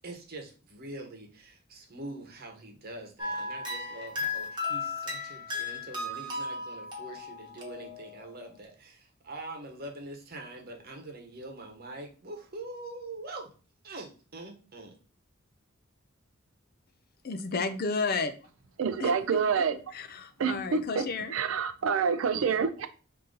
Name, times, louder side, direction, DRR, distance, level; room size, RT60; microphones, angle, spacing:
voice 1, 0.0-13.5 13.8-15.0, right 2 dB, 50° right, 1 dB, 1.0 m, -44 dB
sound 1, 3.2-8.3, left 3 dB, 25° right, 1.1 m, -35 dB
voice 2, 17.2-18.3 19.0-19.6 19.9-21.4, left 4 dB, 50° left, 9 dB, 0.5 m, -32 dB
voice 3, 18.8-19.8 20.4-21.0 21.3-22.9, right 6 dB, 75° right, 10 dB, 0.4 m, -27 dB
3.8 x 2.7 x 3.8 m, 0.37 s
head